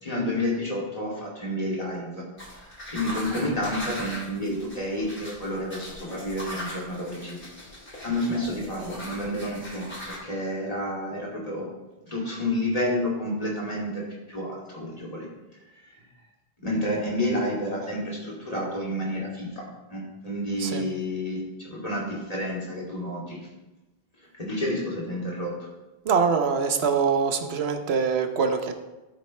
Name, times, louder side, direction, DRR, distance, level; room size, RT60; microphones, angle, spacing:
voice 1, 0.0-7.4 8.0-11.7 12.1-15.3 16.6-23.4 24.3-25.5, left 1 dB, 35° left, -4 dB, 2.8 m, -30 dB
sound 1, 2.4-10.2, equal, 60° left, 3.8 m, -39 dB
voice 2, 26.0-28.7, right 5 dB, 90° right, 7 dB, 1.1 m, -24 dB
13.0 x 8.1 x 3.3 m, 1.1 s
omnidirectional pair, 1.0 m